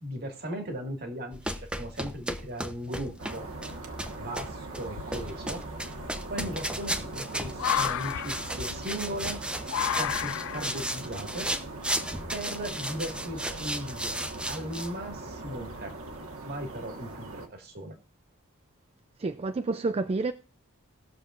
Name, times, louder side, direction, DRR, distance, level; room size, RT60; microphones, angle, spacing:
voice 1, 0.0-3.5 4.2-5.6 6.3-9.4 10.0-11.5 12.3-15.9 16.4-18.0, equal, 50° right, 1.8 m, -37 dB
sound 1, 1.3-14.9, right 1 dB, 5° right, 0.7 m, -35 dB
sound 2, 3.0-3.6 4.3-4.4 4.9-12.9, left 11 dB, 65° left, 0.3 m, -34 dB
sound 3, 3.2-17.5, right 2 dB, 70° right, 1.4 m, -41 dB
voice 2, 19.2-20.3, right 3 dB, 25° right, 0.3 m, -29 dB
19.5 x 6.8 x 2.5 m
head